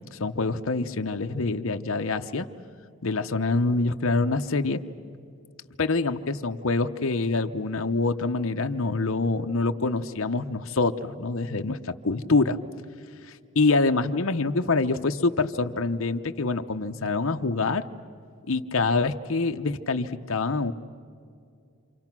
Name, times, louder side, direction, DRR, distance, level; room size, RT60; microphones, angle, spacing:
voice 1, 0.1-2.5 3.0-4.8 5.8-11.8 12.0-12.6 13.3-17.9 18.5-20.7, left 3 dB, 65° left, 6 dB, 0.8 m, -25 dB
28.5 x 27.0 x 6.1 m, 2.4 s
head